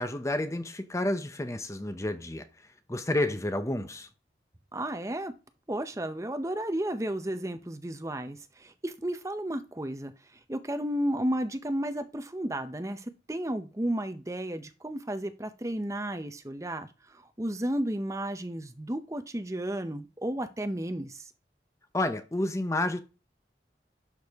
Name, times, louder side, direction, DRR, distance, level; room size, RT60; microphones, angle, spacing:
voice 1, 0.0-2.5 2.9-4.1 21.9-23.0, left 1 dB, 15° left, 0.7 m, -30 dB
voice 2, 4.7-5.3 5.7-21.3, right 1 dB, 15° right, 0.7 m, -33 dB
11.5 x 6.3 x 3.5 m
head